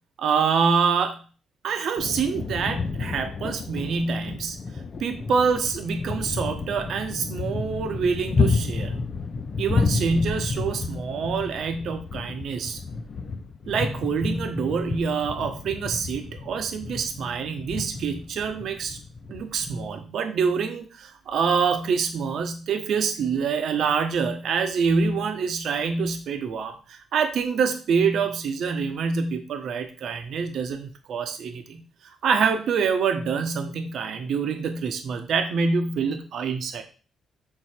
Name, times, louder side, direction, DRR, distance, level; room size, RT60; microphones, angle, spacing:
voice 1, 0.2-1.2 1.6-4.6 5.0-9.0 9.6-12.8 13.7-19.0 19.3-36.8, right 5 dB, 70° right, 6 dB, 1.0 m, -26 dB
sound 1, 2.0-19.9, left 4 dB, 40° left, 0.7 m, -31 dB
6.8 x 4.0 x 4.5 m, 0.37 s
cardioid pair, 90°, 0 cm